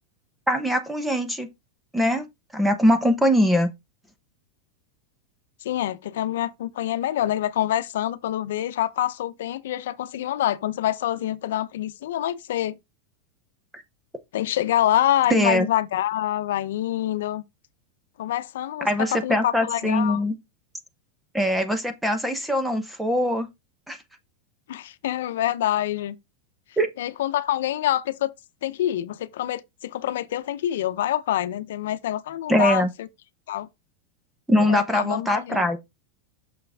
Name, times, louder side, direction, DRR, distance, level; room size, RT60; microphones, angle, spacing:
voice 1, 0.5-1.5 1.9-2.2 2.5-3.7 13.7-13.8 15.3-15.7 18.8-20.3 21.3-23.5 23.9-24.0 26.8-26.9 32.5-32.9 34.5-35.8, equal, 5° right, 0.8 m, -22 dB
voice 2, 5.6-12.8 14.3-17.4 18.2-20.2 24.7-26.2 27.0-28.3 28.6-33.1 33.5-33.7 34.7-35.6, left 12 dB, 80° left, 0.7 m, -26 dB
6.3 x 5.8 x 3.5 m
supercardioid pair, 160°, 0 cm